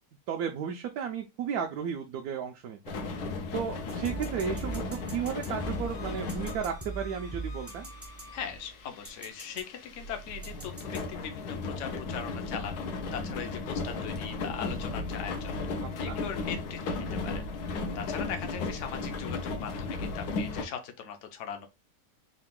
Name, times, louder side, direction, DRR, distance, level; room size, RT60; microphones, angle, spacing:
voice 1, 0.3-3.0 3.5-7.9 16.0-16.2, right 7 dB, 75° right, 1.1 m, -34 dB
sound 1, 2.8-20.6, left 3 dB, 80° left, 1.2 m, -35 dB
sound 2, 3.9-8.7 9.0-9.6 10.4-11.0, right 2 dB, 20° right, 0.4 m, -41 dB
voice 2, 8.3-12.8 13.1-15.6 16.0-17.5 17.9-21.7, left 8 dB, 60° left, 0.9 m, -40 dB
3.8 x 2.5 x 3.5 m
omnidirectional pair, 1.6 m